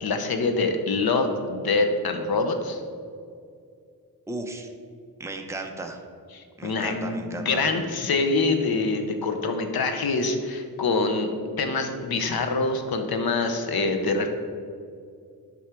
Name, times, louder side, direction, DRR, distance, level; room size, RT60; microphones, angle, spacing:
voice 1, 0.0-2.8 6.3-11.3 11.6-14.3, left 3 dB, 70° left, 6 dB, 0.9 m, -25 dB
voice 2, 4.3-4.7 5.2-6.0 6.6-7.7, right 2 dB, 5° right, 3 dB, 0.7 m, -35 dB
8.3 x 5.4 x 4.5 m, 2.3 s
wide cardioid pair, 110°, 38 cm